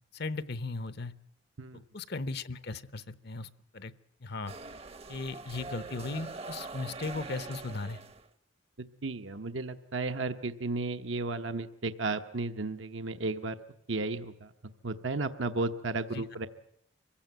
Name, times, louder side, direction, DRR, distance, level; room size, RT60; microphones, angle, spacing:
voice 1, 0.1-1.1 1.9-3.9 4.2-4.5 5.1-8.0 16.1-16.2, left 3 dB, 55° left, 15 dB, 0.8 m, -37 dB
sound 1, 4.5-8.3, right 3 dB, 30° right, 0.8 m, -43 dB
voice 2, 8.8-13.6 13.9-14.5 14.8-16.5, right 3 dB, 70° right, 8 dB, 1.0 m, -34 dB
25.0 x 16.0 x 9.2 m, 0.72 s
head